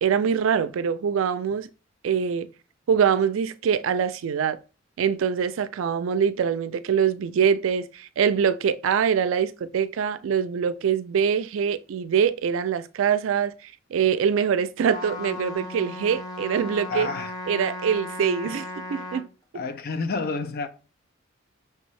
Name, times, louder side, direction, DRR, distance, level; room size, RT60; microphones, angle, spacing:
voice 1, 0.0-1.7 2.0-2.5 2.9-4.6 5.0-17.1 17.5-18.6 18.9-19.3, right 7 dB, 80° right, 0.3 m, -24 dB
Trumpet, 14.8-19.3, left 2 dB, 20° left, 0.9 m, -36 dB
voice 2, 16.9-17.3 18.4-18.6 19.5-20.7, left 4 dB, 50° left, 0.5 m, -29 dB
5.6 x 2.6 x 3.1 m
head